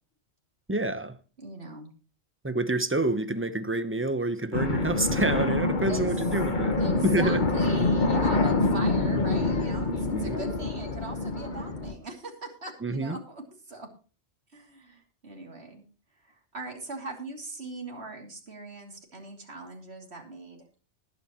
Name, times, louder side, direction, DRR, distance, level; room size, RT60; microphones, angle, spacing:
voice 1, 0.7-1.2 2.4-7.4 10.1-10.4 12.8-13.2, right 2 dB, 10° right, 0.8 m, -28 dB
voice 2, 1.4-1.9 5.9-13.9 14.5-15.8 16.1-20.7, right 2 dB, 65° right, 3.2 m, -40 dB
sound 1, 4.5-11.9, left 2 dB, 45° left, 1.4 m, -26 dB
20.0 x 8.7 x 3.0 m
omnidirectional pair, 1.2 m